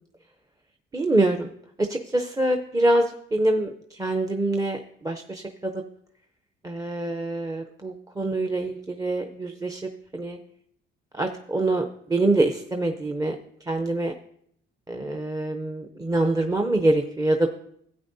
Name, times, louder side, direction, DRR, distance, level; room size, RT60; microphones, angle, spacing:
voice 1, 0.9-1.5 1.8-3.7 4.0-4.8 5.0-5.4 6.6-9.8 10.1-10.4 11.2-11.8 12.1-13.4 13.7-14.1 14.9-17.5, right 2 dB, 15° right, 4 dB, 0.6 m, -24 dB
13.5 x 8.5 x 2.7 m, 0.68 s
cardioid pair, 90°, 20 cm